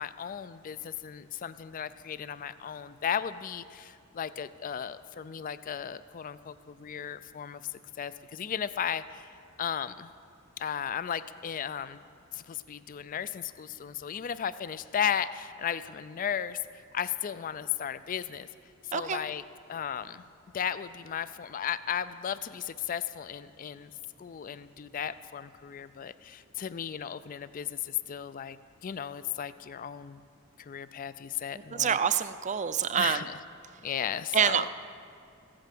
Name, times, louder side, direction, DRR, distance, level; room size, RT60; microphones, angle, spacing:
voice 1, 0.0-7.6 8.0-9.3 9.6-10.1 10.6-12.0 12.3-16.6 16.9-18.5 18.9-19.4 19.7-20.2 20.5-23.9 24.2-28.6 28.8-30.2 30.6-32.0 33.0-33.3 33.8-34.7, left 8 dB, 40° left, 15 dB, 0.4 m, -35 dB
voice 2, 31.5-33.3 34.3-34.6, right 7 dB, 35° right, 13 dB, 0.5 m, -27 dB
15.0 x 8.8 x 7.6 m, 2.6 s
head